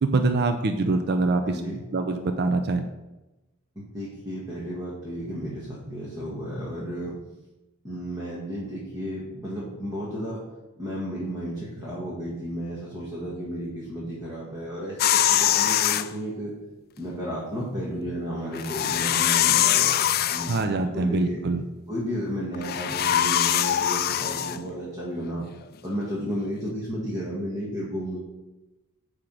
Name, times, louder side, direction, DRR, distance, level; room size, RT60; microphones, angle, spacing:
voice 1, 0.0-1.6 1.9-2.9 20.5-21.6, right 3 dB, 50° right, 7 dB, 0.5 m, -24 dB
voice 2, 1.4-1.8 3.8-7.1 7.8-10.4 10.8-16.5 17.0-21.4 21.9-25.5 25.8-28.2, equal, 15° right, -6 dB, 1.8 m, -33 dB
sound 1, 15.0-16.1 18.5-20.7 22.5-24.6, left 11 dB, 45° left, 0.4 m, -23 dB
9.6 x 3.6 x 6.2 m, 1.0 s
head